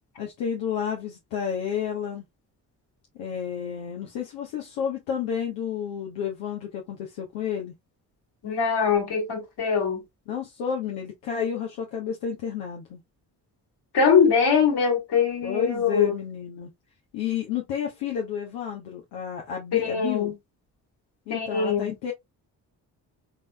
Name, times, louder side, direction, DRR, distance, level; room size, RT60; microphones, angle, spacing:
voice 1, 0.2-2.2 3.1-7.7 10.3-13.0 15.4-16.7 17.1-20.3 21.3-22.1, left 8 dB, 85° left, 1.1 m, -31 dB
voice 2, 8.4-10.0 13.9-16.1 19.7-20.3 21.3-21.9, left 6 dB, 60° left, 2.4 m, -22 dB
4.0 x 3.8 x 2.2 m
hypercardioid pair, 50°, 44 cm